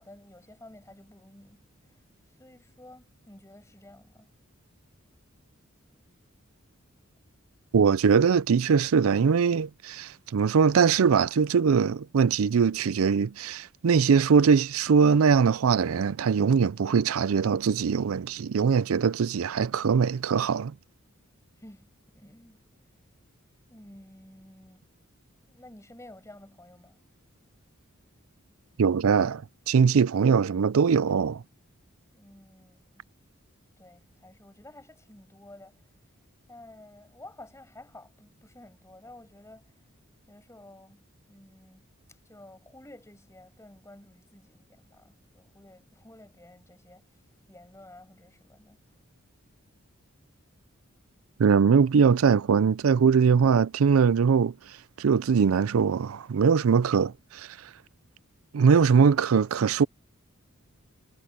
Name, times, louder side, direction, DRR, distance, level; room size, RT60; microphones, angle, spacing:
voice 1, 0.0-2.0 2.4-4.3 21.6-22.6 23.7-24.9 25.5-27.0 32.1-33.1 33.8-35.9 36.5-39.8 40.3-47.2 47.5-49.0, left 1 dB, 15° left, 7.4 m, -52 dB
voice 2, 7.7-20.7 28.8-31.4 51.4-54.5 55.0-57.5 58.5-59.8, right 6 dB, 80° right, 0.4 m, -22 dB
head